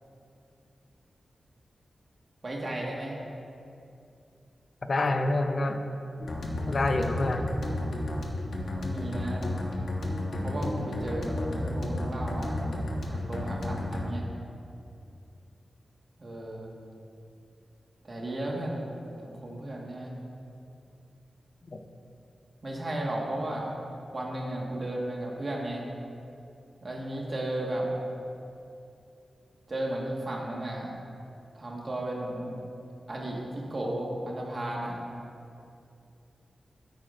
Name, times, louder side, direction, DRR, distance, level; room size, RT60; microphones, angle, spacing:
voice 1, 2.4-3.2 8.7-9.5 10.4-14.3 16.2-16.7 18.0-18.9 19.2-20.1 22.6-23.7 24.1-25.8 26.8-27.9 29.7-30.9 31.5-32.5 33.1-35.0, right 1 dB, 35° right, -2 dB, 1.5 m, -34 dB
voice 2, 4.9-5.8 6.7-7.5 21.6-21.8, left 2 dB, 40° left, 5 dB, 0.6 m, -27 dB
sound 1, 6.2-14.0, left 1 dB, 70° left, 1.2 m, -32 dB
13.5 x 9.4 x 2.5 m, 2.6 s
wide cardioid pair, 175°, 0 cm